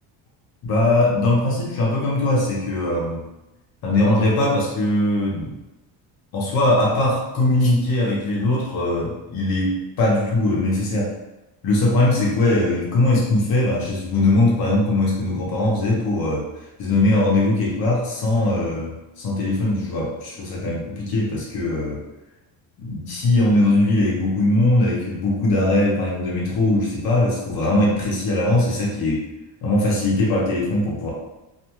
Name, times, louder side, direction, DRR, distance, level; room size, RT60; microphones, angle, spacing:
voice 1, 0.6-3.2 3.8-5.5 6.3-11.1 11.6-16.4 16.8-22.0 22.8-29.2 29.6-31.1, left 2 dB, 50° left, -3 dB, 0.9 m, -20 dB
2.6 x 2.2 x 3.0 m, 0.99 s
cardioid pair, 140°, 47 cm